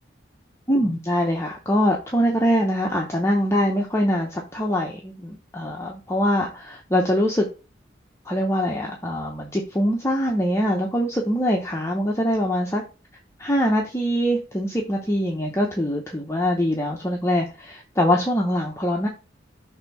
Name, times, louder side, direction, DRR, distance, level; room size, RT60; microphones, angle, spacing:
voice 1, 0.7-7.4 8.3-12.8 13.4-19.1, equal, 15° left, 0 dB, 0.8 m, -23 dB
6.5 x 3.5 x 5.5 m, 0.33 s
head